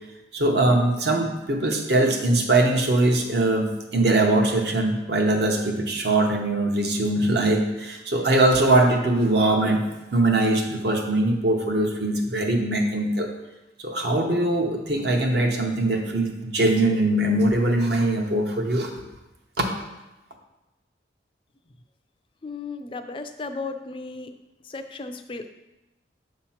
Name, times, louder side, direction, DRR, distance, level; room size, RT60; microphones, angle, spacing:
voice 1, 0.3-9.8 10.1-13.3 13.8-19.0 19.6-19.8, right 2 dB, 60° right, 2 dB, 0.9 m, -22 dB
voice 2, 22.4-24.3 24.6-25.5, left 3 dB, 30° left, 8 dB, 0.4 m, -35 dB
7.3 x 2.9 x 5.7 m, 0.99 s
head